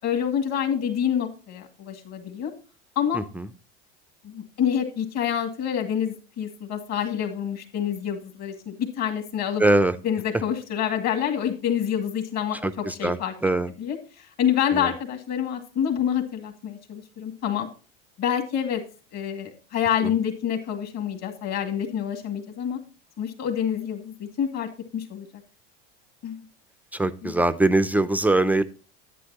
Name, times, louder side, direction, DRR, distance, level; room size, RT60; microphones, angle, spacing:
voice 1, 0.0-2.5 3.0-3.2 4.2-9.6 10.0-13.3 13.8-17.7 18.2-18.8 19.1-22.8 23.2-25.3 26.2-26.5 27.2-27.4, left 9 dB, 50° left, 4 dB, 2.3 m, -27 dB
voice 2, 3.1-3.5 9.6-10.0 12.6-13.7 14.7-14.9 20.0-20.1 26.9-28.6, right 2 dB, 5° right, 9 dB, 0.3 m, -22 dB
10.0 x 9.2 x 2.9 m, 0.35 s
supercardioid pair, 105°, 35 cm